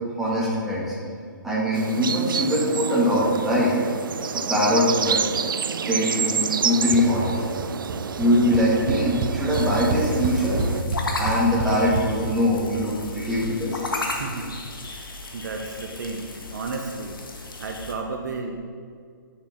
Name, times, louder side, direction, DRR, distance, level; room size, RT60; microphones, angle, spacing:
voice 1, 0.1-0.9 1.4-3.7 4.5-5.3 5.9-7.4 8.2-10.6 11.2-13.8, equal, 5° right, -8 dB, 2.3 m, -22 dB
sound 1, 1.7-10.8, right 6 dB, 75° right, 0.4 m, -29 dB
voice 2, 4.6-5.0 14.1-14.6 14.9-18.5, right 4 dB, 55° right, 3 dB, 1.0 m, -34 dB
sound 2, 6.9-7.3 7.6-8.3 8.5-12.1, right 2 dB, 30° right, 1.3 m, -27 dB
sound 3, 9.5-17.9, left 2 dB, 80° left, 1.4 m, -35 dB
9.3 x 7.0 x 4.5 m, 2.1 s
hypercardioid pair, 145°, 11 cm